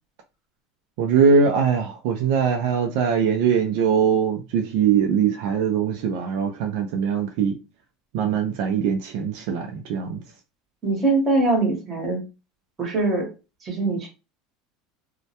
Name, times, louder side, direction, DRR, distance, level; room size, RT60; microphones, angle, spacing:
voice 1, 1.0-7.5 8.1-10.2, right 6 dB, 65° right, 0.3 m, -21 dB
voice 2, 10.8-12.2 12.8-13.3 13.6-14.1, right 2 dB, 20° right, 0.9 m, -22 dB
2.2 x 2.0 x 2.7 m
cardioid pair, 165°, 0 cm